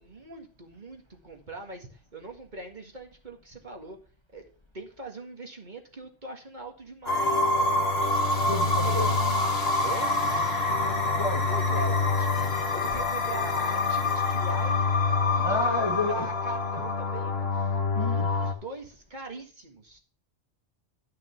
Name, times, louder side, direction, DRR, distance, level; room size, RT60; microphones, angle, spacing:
voice 1, 0.0-4.0 4.3-4.4 4.7-7.8 8.3-9.4 9.8-10.1 11.4-14.8 15.3-17.5 18.4-20.0, right 3 dB, 40° right, 2.0 m, -41 dB
sound 1, 7.1-18.5, left 3 dB, 60° left, 1.6 m, -26 dB
voice 2, 8.4-9.2 11.1-11.6 15.4-16.3 16.7-16.8 17.9-18.3, left 2 dB, 25° left, 1.2 m, -31 dB
11.0 x 6.1 x 5.8 m
omnidirectional pair, 1.2 m